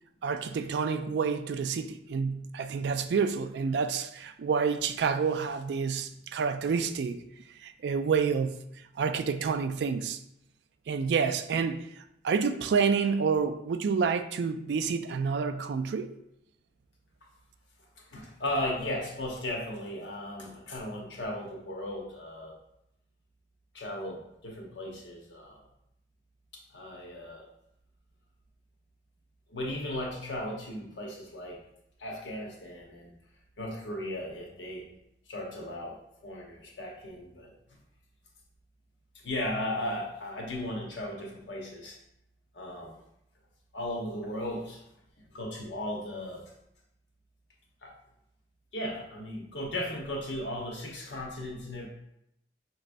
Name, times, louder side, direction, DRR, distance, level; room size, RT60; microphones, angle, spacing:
voice 1, 0.2-7.2 7.6-8.6 9.0-10.2 10.9-11.9 12.2-16.1, right 5 dB, 70° right, 0.3 m, -28 dB
voice 2, 18.0-22.6 23.7-25.6 26.5-27.5 29.5-31.6 32.0-33.1 33.6-34.9 35.3-37.5 39.1-42.0 42.5-43.0 43.7-44.8 45.2-46.5 47.8-47.9 48.7-51.9, left 1 dB, 85° left, 1.0 m, -36 dB
5.3 x 3.1 x 2.5 m
head